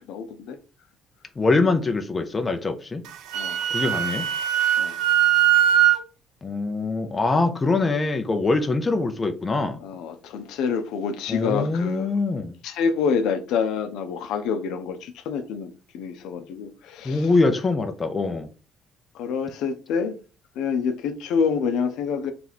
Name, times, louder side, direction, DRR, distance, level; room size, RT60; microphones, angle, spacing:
voice 1, 0.1-0.6 3.3-3.6 4.8-5.0 9.8-12.2 12.6-17.3 19.1-20.2 20.6-22.3, left 6 dB, 80° left, 0.6 m, -27 dB
voice 2, 1.4-3.0 3.7-4.3 6.4-9.8 11.3-12.6 17.0-18.5, left 3 dB, 20° left, 0.5 m, -23 dB
Wind instrument woodwind instrument, 3.1-6.0, right 11 dB, 85° right, 0.7 m, -20 dB
3.3 x 3.0 x 4.0 m
cardioid pair, 160°, 0 cm